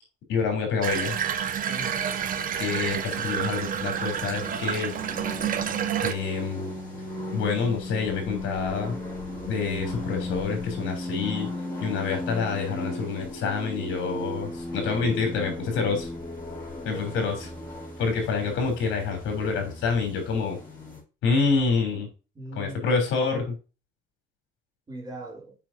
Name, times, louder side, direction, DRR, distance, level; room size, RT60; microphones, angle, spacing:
voice 1, 0.3-1.2 2.6-4.9 6.0-6.7 7.3-8.9 9.4-11.5 11.8-16.1 16.8-17.5 18.0-20.6 21.2-22.1 22.5-23.6, left 5 dB, 75° left, 3.2 m, -27 dB
Water tap faucet / Bathtub (filling or washing), 0.8-6.1, right 9 dB, 45° right, 0.8 m, -29 dB
voice 2, 1.7-2.0 16.8-17.3 22.4-23.0 24.9-25.5, right 2 dB, 20° right, 2.4 m, -40 dB
sound 1, 1.9-21.0, left 1 dB, 10° left, 3.7 m, -36 dB
7.5 x 5.5 x 2.7 m
cardioid pair, 160°, 20 cm